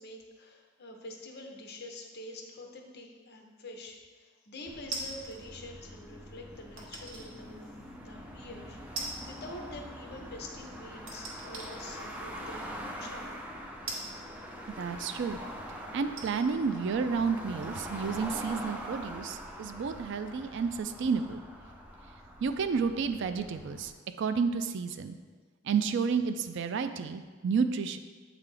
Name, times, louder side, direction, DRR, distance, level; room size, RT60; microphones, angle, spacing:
voice 1, 0.0-7.8 8.0-12.6 13.0-13.5, left 1 dB, 55° left, 2 dB, 0.8 m, -46 dB
sound 1, 4.7-23.9, equal, 5° right, 0.6 m, -44 dB
sound 2, 4.9-5.4 6.8-7.3 7.9-8.0 9.0-9.4 9.7-9.8 11.1-11.7 12.6-12.7 13.9-15.0 15.6-15.7 16.1-18.6 18.8-18.9, right 3 dB, 90° right, 1.1 m, -41 dB
voice 2, 14.8-15.4 15.9-21.4 22.4-23.9 24.2-25.1 25.6-28.0, right 5 dB, 60° right, 9 dB, 0.4 m, -31 dB
8.1 x 3.8 x 3.3 m, 1.4 s
head